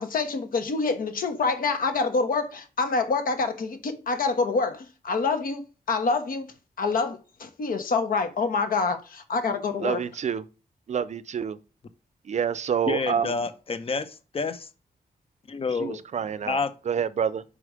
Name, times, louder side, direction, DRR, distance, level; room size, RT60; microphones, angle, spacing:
voice 1, 0.0-10.0, left 4 dB, 70° left, 1.1 m, -27 dB
voice 2, 9.8-10.4 10.9-11.6 12.3-13.4 15.8-17.4, right 7 dB, 50° right, 0.5 m, -28 dB
voice 3, 12.9-14.7 15.5-16.0 16.4-16.7, left 4 dB, 40° left, 0.7 m, -29 dB
5.0 x 4.8 x 4.9 m
wide cardioid pair, 105°, 15 cm